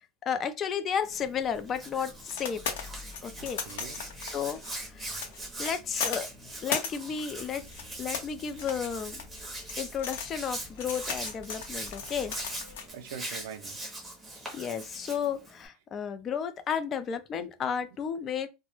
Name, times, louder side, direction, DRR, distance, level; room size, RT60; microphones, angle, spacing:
voice 1, 0.3-2.6 3.2-3.6 4.3-4.6 4.9-5.0 5.6-6.3 6.6-7.6 8.0-9.2 9.8-12.3 14.5-18.5, left 7 dB, 30° left, 0.3 m, -32 dB
Hands, 1.0-15.7, right 1 dB, 10° right, 0.6 m, -41 dB
sound 1, 1.2-12.9, left 6 dB, 80° left, 0.6 m, -38 dB
voice 2, 3.3-4.1 4.4-4.6 5.4-5.5 12.9-13.8 17.4-17.5, right 7 dB, 70° right, 0.4 m, -44 dB
2.2 x 2.0 x 3.0 m
supercardioid pair, 150°, 0 cm